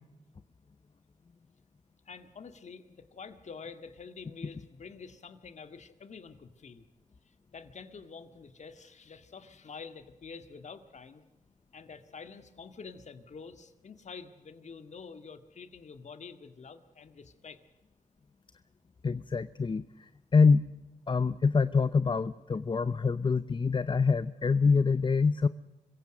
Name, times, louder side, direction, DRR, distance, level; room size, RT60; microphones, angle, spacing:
voice 1, 2.1-6.9 7.3-11.2 11.7-17.6, left 5 dB, 55° left, 10 dB, 1.9 m, -47 dB
voice 2, 19.0-19.8 20.3-20.7 21.1-25.5, left 4 dB, 35° left, 15 dB, 0.7 m, -25 dB
26.0 x 16.0 x 6.4 m, 1.1 s
cardioid pair, 60°, 14 cm